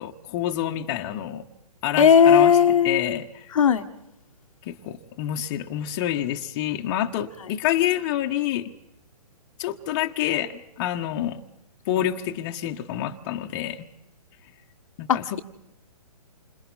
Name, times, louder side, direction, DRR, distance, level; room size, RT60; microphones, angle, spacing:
voice 1, 0.0-1.4 1.8-3.5 4.6-8.7 9.6-11.4 11.9-13.9 15.0-15.4, left 12 dB, 30° left, 3 dB, 1.4 m, -28 dB
voice 2, 2.0-3.2 3.5-3.9 15.1-15.4, left 7 dB, 55° left, 6 dB, 1.4 m, -17 dB
29.0 x 26.5 x 4.2 m, 0.85 s
figure-of-eight pair, 130°, 20 cm